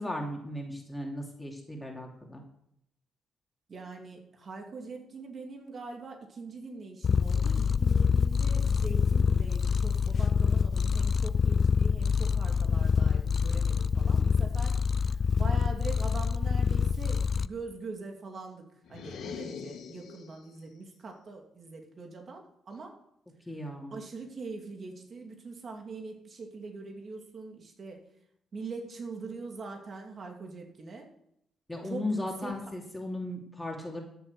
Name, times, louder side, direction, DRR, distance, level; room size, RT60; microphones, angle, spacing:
voice 1, 0.0-2.4 23.5-23.9 31.7-34.0, left 1 dB, 10° left, -1 dB, 2.9 m, -36 dB
voice 2, 3.7-14.8 15.3-18.6 18.9-22.9 23.9-28.1 28.5-31.1 31.8-32.7, right 4 dB, 45° right, 2 dB, 2.7 m, -42 dB
Purr, 7.0-17.5, left 6 dB, 50° left, 0.4 m, -26 dB
sound 1, 18.8-20.5, left 7 dB, 80° left, 2.4 m, -42 dB
13.5 x 7.3 x 6.9 m, 0.76 s
cardioid pair, 85°, 0 cm